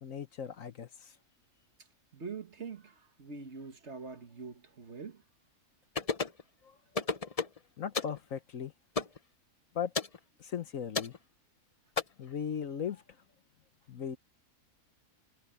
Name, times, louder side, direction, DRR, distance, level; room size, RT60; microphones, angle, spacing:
voice 1, 0.0-1.1 7.8-8.7 9.7-9.9 10.4-11.1 12.2-13.0 13.9-14.2, left 7 dB, 60° left, 1.3 m, -37 dB
voice 2, 2.1-5.2, right 5 dB, 45° right, 1.8 m, -44 dB
sound 1, 6.0-6.4 6.9-7.6 7.9-8.2 9.0-9.2 9.9-10.2 10.9-11.2 12.0-12.1, left 4 dB, 35° left, 0.7 m, -32 dB
omnidirectional pair, 1.6 m